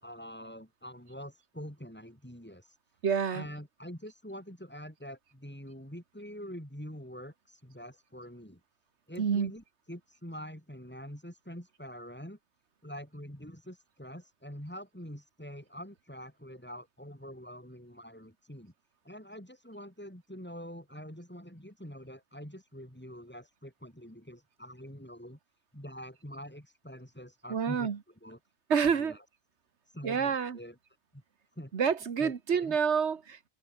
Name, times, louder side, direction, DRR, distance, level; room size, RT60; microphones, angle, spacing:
voice 1, 0.0-2.8 3.3-8.6 9.1-12.4 12.8-18.7 19.0-25.4 25.7-27.9 28.2-28.4 28.9-29.2 29.9-30.8 31.1-31.2 31.6-31.7 32.2-32.8, equal, 10° left, 5.6 m, -45 dB
voice 2, 3.0-3.5 9.2-9.5 27.5-28.0 28.7-29.2 30.0-30.6 31.7-33.5, right 6 dB, 80° right, 1.6 m, -28 dB
omnidirectional pair, 1.1 m